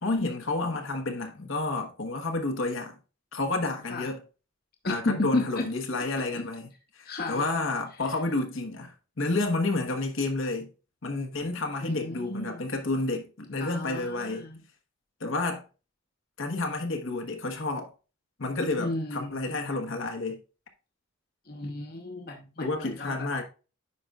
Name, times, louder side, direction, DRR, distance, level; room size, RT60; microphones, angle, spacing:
voice 1, 0.0-2.9 3.3-4.2 4.8-6.7 7.0-10.7 11.0-14.4 15.2-15.6 16.4-17.9 18.4-20.4 22.6-23.4, left 2 dB, 75° left, 1.2 m, -30 dB
voice 2, 4.8-5.7 6.3-6.5 7.0-7.4 11.8-12.6 13.6-14.6 18.8-19.6 21.5-22.7 23.0-23.3, left 2 dB, 50° left, 1.0 m, -32 dB
9.6 x 5.3 x 2.4 m
head